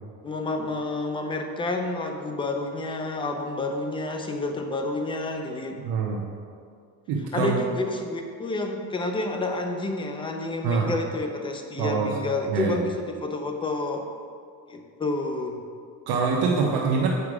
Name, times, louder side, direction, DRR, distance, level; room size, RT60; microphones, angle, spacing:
voice 1, 0.2-5.8 7.3-14.0 14.7-15.6, left 2 dB, 15° left, 4 dB, 0.5 m, -29 dB
voice 2, 5.8-6.2 7.1-7.6 10.6-10.9 11.8-12.1 12.5-12.8 16.1-17.1, right 5 dB, 65° right, -2 dB, 1.0 m, -24 dB
8.2 x 4.9 x 4.9 m, 2.2 s
cardioid pair, 160°, 41 cm